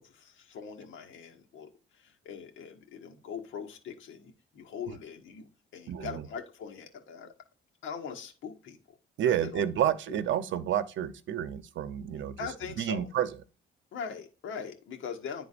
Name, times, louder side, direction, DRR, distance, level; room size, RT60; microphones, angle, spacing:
voice 1, 0.0-1.7 2.0-5.5 5.7-7.3 7.8-8.8 9.3-9.6 10.1-10.2 12.4-13.1 13.9-15.5, left 6 dB, 75° left, 1.6 m, -41 dB
voice 2, 5.9-6.3 9.2-13.4, right 10 dB, 70° right, 0.8 m, -30 dB
11.0 x 3.8 x 2.5 m
cardioid pair, 90°, 20 cm